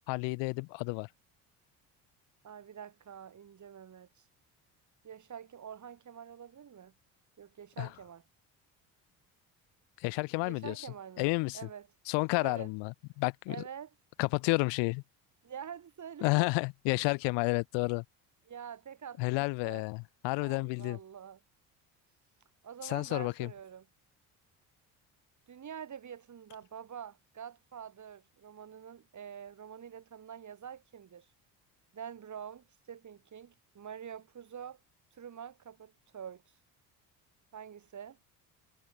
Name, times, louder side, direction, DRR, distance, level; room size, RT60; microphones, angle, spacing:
voice 1, 0.1-1.1 7.8-7.9 10.0-10.9 11.2-11.6 12.1-13.6 14.2-15.0 16.2-18.0 19.2-21.0 22.8-23.5, left 28 dB, 75° left, 0.7 m, -31 dB
voice 2, 2.4-4.2 5.0-6.9 7.4-8.2 10.4-11.3 11.5-11.9 12.4-12.7 13.5-13.9 15.4-16.5 18.5-19.8 20.4-21.4 22.6-23.9 25.5-31.3 31.9-34.8 35.1-36.4 37.5-38.2, right 8 dB, 40° right, 3.0 m, -46 dB
supercardioid pair, 70°, 43 cm